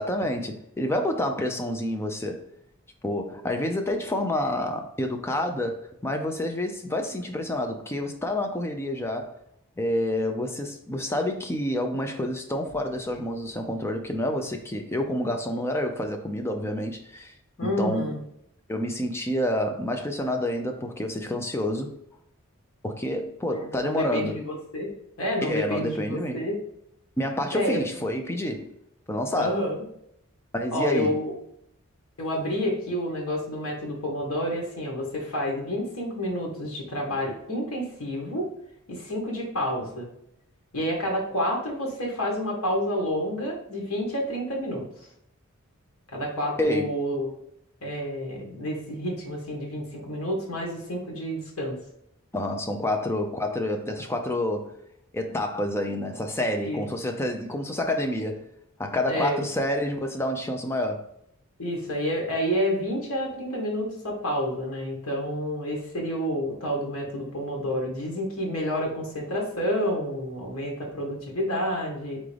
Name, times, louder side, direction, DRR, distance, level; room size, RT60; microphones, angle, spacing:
voice 1, 0.0-2.5 3.0-9.3 9.8-18.1 18.7-22.0 22.8-24.4 25.4-26.5 27.2-28.7 29.1-29.7 30.5-31.2 46.6-47.0 52.3-54.8 55.1-58.5 58.8-61.1, left 1 dB, 10° left, 0.5 m, -28 dB
voice 2, 17.6-18.2 23.5-24.9 25.2-26.6 27.5-27.8 29.3-29.8 30.7-31.3 32.2-38.5 38.9-40.1 40.7-44.8 46.1-47.3 47.8-51.8 56.6-56.8 59.1-59.4 61.6-72.2, equal, 75° left, 1.4 m, -29 dB
3.8 x 3.7 x 3.3 m
head